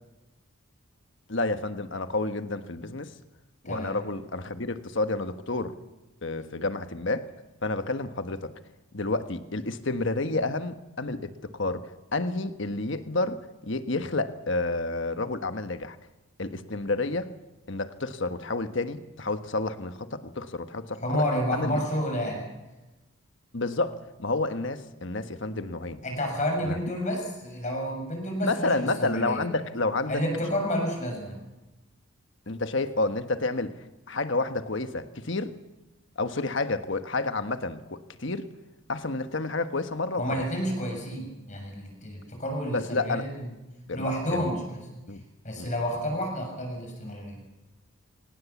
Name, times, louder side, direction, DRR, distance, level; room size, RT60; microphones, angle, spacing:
voice 1, 1.3-3.1 3.6-5.7 6.2-7.3 7.6-8.5 8.9-16.0 16.4-17.3 17.7-21.2 21.5-21.7 23.5-26.0 26.6-26.8 28.4-30.2 32.5-33.8 34.1-35.5 36.2-38.4 38.9-40.4 42.7-43.2 43.9-44.5 45.1-45.2 45.6-45.7, left 2 dB, 60° left, 9 dB, 1.3 m, -30 dB
voice 2, 21.0-22.5 26.0-29.4 30.1-31.4 40.2-43.5 43.9-44.8 45.4-47.4, equal, 35° left, 3 dB, 7.0 m, -30 dB
26.0 x 18.5 x 7.3 m, 1.1 s
head